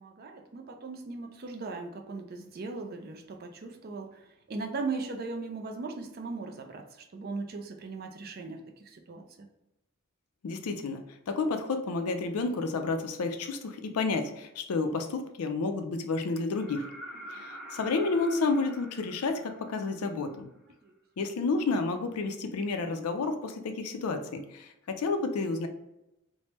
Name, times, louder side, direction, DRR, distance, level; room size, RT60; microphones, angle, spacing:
voice 1, 0.0-9.5 20.8-21.0, right 3 dB, 45° right, 5 dB, 0.4 m, -38 dB
voice 2, 10.4-16.9 17.3-20.5 21.2-25.7, left 3 dB, 85° left, 7 dB, 0.4 m, -30 dB
sound 1, 16.5-20.3 22.2-22.3, equal, 5° left, 0.7 m, -46 dB
3.3 x 2.1 x 2.9 m, 0.90 s
head